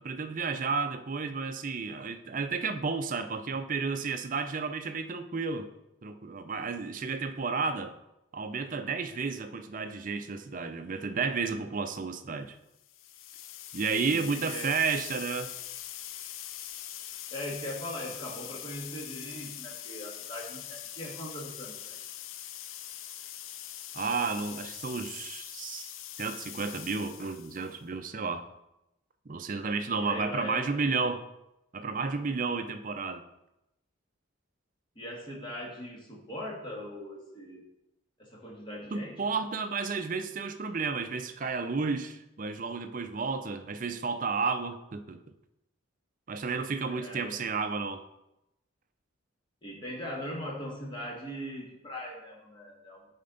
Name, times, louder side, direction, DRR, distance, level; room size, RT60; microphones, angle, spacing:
voice 1, 0.0-5.7 6.0-8.0 8.3-12.5 13.7-15.5 23.9-25.9 26.2-28.4 29.3-31.3 31.7-33.2 38.9-45.2 46.3-48.0, right 4 dB, 40° right, 8 dB, 0.5 m, -32 dB
sound 1, 12.8-27.8, left 11 dB, 75° left, 0.4 m, -43 dB
voice 2, 14.2-14.7 17.3-22.0 30.0-30.7 34.9-37.6 38.2-39.2 46.8-47.4 49.6-53.1, left 1 dB, 25° left, -2 dB, 1.5 m, -40 dB
10.0 x 4.3 x 3.9 m, 0.89 s
head